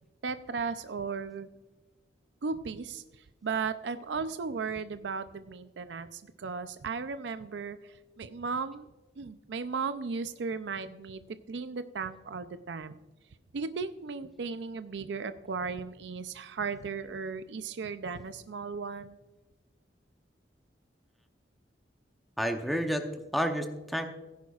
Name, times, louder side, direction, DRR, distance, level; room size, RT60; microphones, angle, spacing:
voice 1, 0.2-1.5 2.4-3.0 3.4-8.9 9.2-11.2 11.5-13.0 13.5-19.2, right 5 dB, 75° right, 11 dB, 0.5 m, -36 dB
voice 2, 22.4-24.1, equal, ahead, 5 dB, 0.7 m, -30 dB
16.5 x 10.5 x 2.4 m, 1.1 s
head